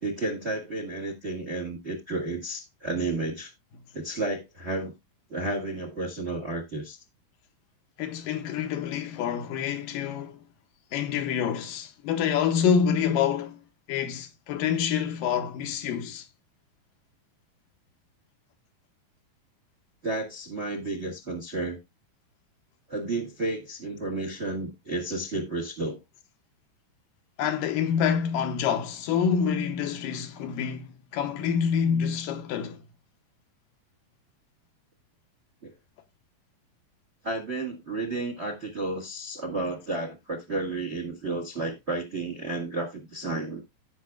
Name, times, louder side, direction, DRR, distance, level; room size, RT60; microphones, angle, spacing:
voice 1, 0.0-3.5 3.9-4.9 5.3-7.0 20.0-21.8 22.9-26.0 35.6-35.7 37.2-43.6, right 2 dB, 45° right, 0.8 m, -32 dB
voice 2, 8.0-10.4 10.9-13.6 13.9-16.3 27.4-32.8, left 7 dB, 80° left, 2.6 m, -27 dB
16.0 x 5.8 x 2.3 m
omnidirectional pair, 3.9 m